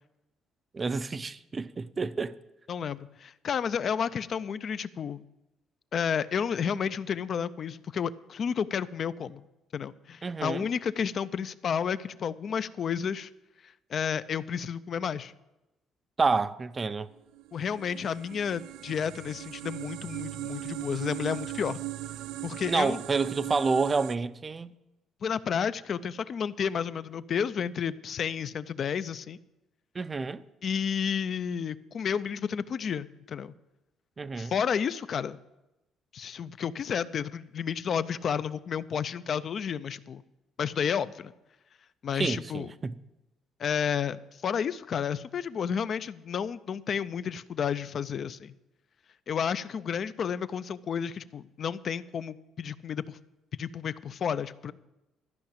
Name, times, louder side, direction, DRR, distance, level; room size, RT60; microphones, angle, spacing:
voice 1, 0.7-2.4 10.2-10.7 16.2-17.1 22.7-24.7 29.9-30.4 34.2-34.5 42.2-42.9, right 4 dB, 25° right, 0.5 m, -29 dB
voice 2, 2.7-5.2 5.9-9.5 9.7-13.3 13.9-15.3 17.5-21.8 22.4-23.0 25.2-29.4 30.6-33.5 34.4-35.4 36.1-40.2 40.6-41.3 42.0-42.7 43.6-48.5 49.3-53.2 53.5-54.7, left 7 dB, 45° left, 0.4 m, -31 dB
sound 1, 17.3-24.2, right 17 dB, 85° right, 0.3 m, -39 dB
13.0 x 5.8 x 8.6 m
cardioid pair, 125°, 0 cm